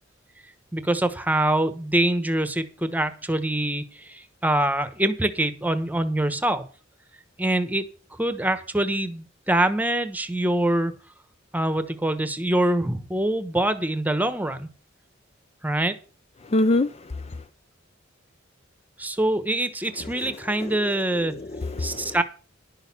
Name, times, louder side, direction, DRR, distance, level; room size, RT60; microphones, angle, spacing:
voice 1, 0.7-6.6 7.4-7.9 8.2-10.9 11.5-14.7 15.6-15.9 19.0-21.3 21.8-22.2, right 1 dB, 10° right, 1.1 m, -24 dB
voice 2, 16.4-17.4 20.0-22.2, left 2 dB, 30° left, 0.5 m, -27 dB
11.0 x 6.5 x 7.3 m
head